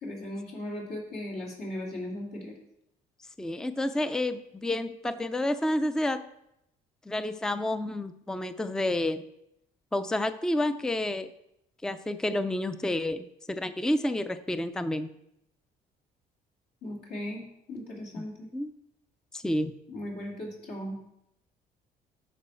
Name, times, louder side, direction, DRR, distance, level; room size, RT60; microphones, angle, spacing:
voice 1, 0.0-2.6 16.8-17.4 17.7-18.5 19.9-21.0, left 1 dB, 70° left, -3 dB, 2.7 m, -37 dB
voice 2, 3.4-6.2 7.1-9.2 9.9-11.3 11.8-15.1 18.2-18.3 18.5-18.7 19.3-19.7, left 1 dB, 5° left, 11 dB, 0.4 m, -29 dB
10.0 x 5.4 x 4.5 m, 0.81 s
cardioid pair, 110°, 17 cm